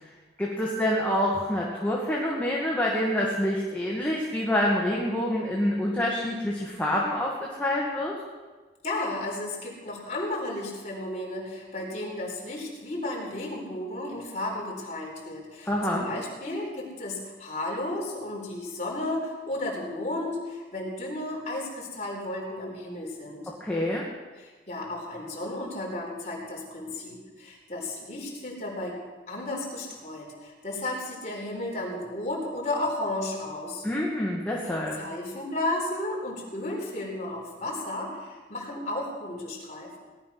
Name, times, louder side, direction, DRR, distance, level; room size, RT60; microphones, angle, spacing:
voice 1, 0.4-8.1 15.7-16.1 23.6-24.0 33.8-35.0, left 1 dB, 10° left, -4 dB, 2.1 m, -27 dB
voice 2, 8.8-23.5 24.4-29.0 29.3-33.8 35.0-40.0, left 1 dB, 40° left, -1 dB, 4.2 m, -33 dB
18.5 x 11.5 x 6.0 m, 1.3 s
head